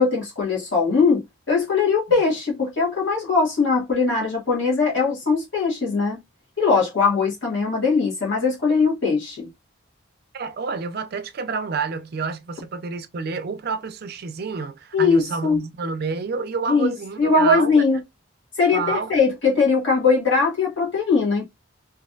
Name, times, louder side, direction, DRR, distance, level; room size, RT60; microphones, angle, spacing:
voice 1, 0.0-6.2 6.6-9.5 14.9-15.6 16.7-18.0 18.6-21.4, left 4 dB, 60° left, 1.4 m, -20 dB
voice 2, 10.3-17.8 18.7-19.2, right 4 dB, 50° right, 0.4 m, -29 dB
2.9 x 2.5 x 2.6 m
head